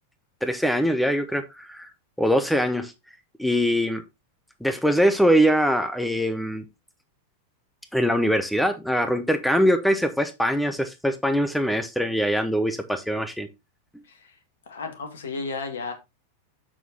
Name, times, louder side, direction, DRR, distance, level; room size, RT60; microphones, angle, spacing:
voice 1, 0.4-1.9 2.2-2.9 3.4-4.0 4.6-6.6 7.9-13.5, equal, ahead, 0.8 m, -22 dB
voice 2, 14.7-15.9, left 4 dB, 65° left, 1.9 m, -33 dB
7.1 x 6.1 x 3.8 m
figure-of-eight pair, 90°, 0 cm